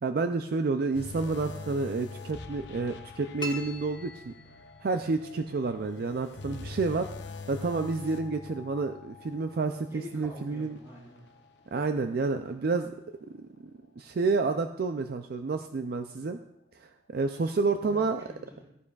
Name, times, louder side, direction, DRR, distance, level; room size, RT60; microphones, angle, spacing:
voice 1, 0.0-4.3 4.8-7.1 7.5-9.9 10.1-10.8 11.7-12.9 13.4-13.5 14.0-16.4 16.8-18.2, right 3 dB, 55° right, 8 dB, 0.4 m, -29 dB
sound 1, 0.9-12.4 12.8-13.0 13.6-13.7, left 4 dB, 65° left, 0.7 m, -45 dB
sound 2, 3.4-5.0, equal, 25° left, 1.1 m, -41 dB
voice 2, 9.9-11.3 17.8-18.7, left 1 dB, 15° right, -4 dB, 4.0 m, -46 dB
14.0 x 9.7 x 2.4 m, 0.82 s
head